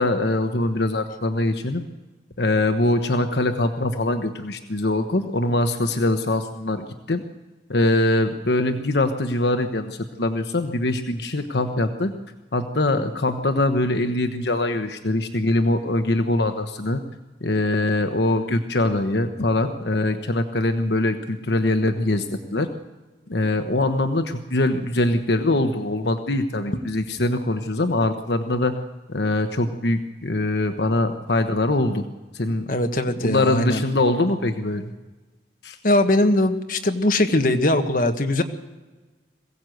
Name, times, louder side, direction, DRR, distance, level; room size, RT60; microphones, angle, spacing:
voice 1, 0.0-1.8 2.4-7.2 7.7-12.1 12.5-17.0 17.4-22.7 23.3-28.8 29.1-32.0 32.3-32.7 33.2-34.9 35.6-35.8, left 2 dB, 70° left, 7 dB, 1.1 m, -23 dB
voice 2, 32.7-33.8 35.8-38.4, left 1 dB, 50° left, 6 dB, 1.4 m, -20 dB
22.0 x 16.0 x 7.9 m, 1.2 s
head